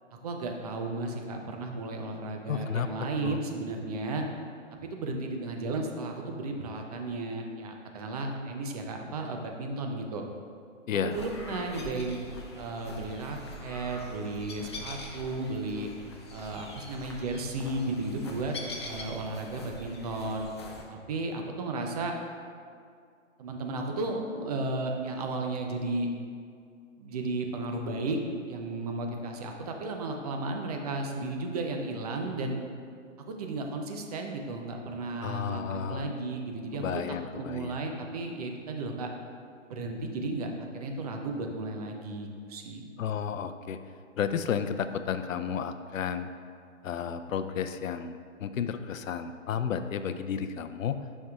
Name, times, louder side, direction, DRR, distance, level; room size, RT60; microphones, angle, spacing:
voice 1, 0.1-4.2 4.8-10.2 11.0-12.2 12.6-15.9 16.3-18.6 18.8-20.5 20.9-22.1 23.4-26.1 27.0-28.2 28.5-32.6 33.2-39.1 39.7-42.8, right 2 dB, 30° right, 3 dB, 0.6 m, -34 dB
voice 2, 2.5-2.9 3.2-3.4 10.9-11.2 35.2-36.1 36.8-37.9 43.0-43.8 44.2-46.3 46.8-51.0, left 7 dB, 85° left, 10 dB, 0.5 m, -32 dB
sound 1, 11.1-20.8, left 1 dB, 25° left, 0.4 m, -43 dB
9.2 x 5.5 x 2.4 m, 2.3 s
hypercardioid pair, 145°, 39 cm